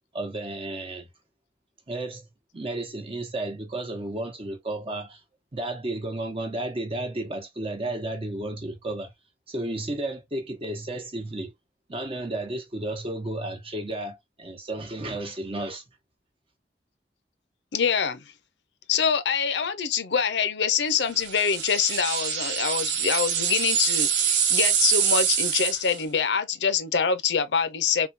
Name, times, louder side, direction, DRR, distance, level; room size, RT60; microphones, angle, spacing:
voice 1, 0.1-1.1 1.9-2.3 2.5-5.2 5.5-9.1 9.5-11.5 11.9-15.8, right 2 dB, 30° right, 0.9 m, -32 dB
voice 2, 17.7-18.2 18.9-28.1, left 6 dB, 80° left, 0.6 m, -25 dB
sound 1, 21.2-26.0, right 8 dB, 80° right, 0.6 m, -25 dB
3.7 x 2.2 x 2.6 m
head